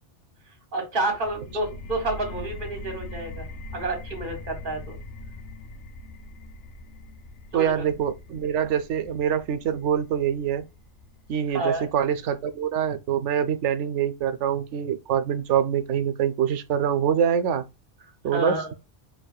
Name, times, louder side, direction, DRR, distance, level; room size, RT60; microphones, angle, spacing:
voice 1, 0.7-3.5 3.7-5.0 7.5-7.8 11.5-11.9 18.3-18.7, right 2 dB, 50° right, 1.5 m, -29 dB
sound 1, 1.2-12.6, left 2 dB, 90° left, 1.0 m, -42 dB
voice 2, 7.5-10.6 11.3-17.6 18.2-18.7, right 8 dB, 80° right, 0.9 m, -25 dB
5.0 x 2.7 x 2.2 m
omnidirectional pair, 1.2 m